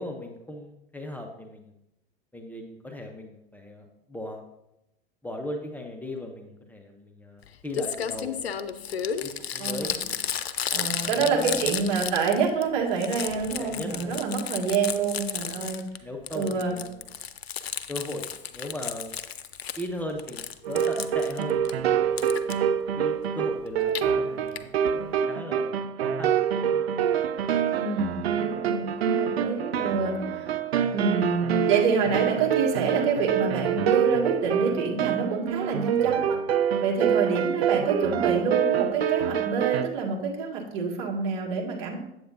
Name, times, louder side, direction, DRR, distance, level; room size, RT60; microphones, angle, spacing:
voice 1, 0.0-1.7 2.3-4.4 5.2-8.4 9.2-10.3 10.9-11.7 13.3-14.3 15.4-15.7 16.0-17.1 17.9-19.1 19.8-22.3 23.0-26.9 28.3-28.8, left 1 dB, 5° left, 1 dB, 0.8 m, -38 dB
Crumpling crinkling, 7.4-7.5 7.7-12.6 12.9-16.0 16.3-19.9 20.2-21.7 22.2-22.5 23.7-24.0 24.6-24.7 24.9-25.0 25.2-25.3, left 8 dB, 90° left, 0.5 m, -33 dB
voice 2, 9.6-9.9 10.7-15.8 16.3-16.7 27.7-30.5 30.9-36.4 36.8-42.0, right 5 dB, 55° right, -1 dB, 2.1 m, -27 dB
sound 1, 20.6-39.8, right 8 dB, 80° right, 0.5 m, -26 dB
8.5 x 7.8 x 2.7 m, 0.87 s
hypercardioid pair, 90°, 31 cm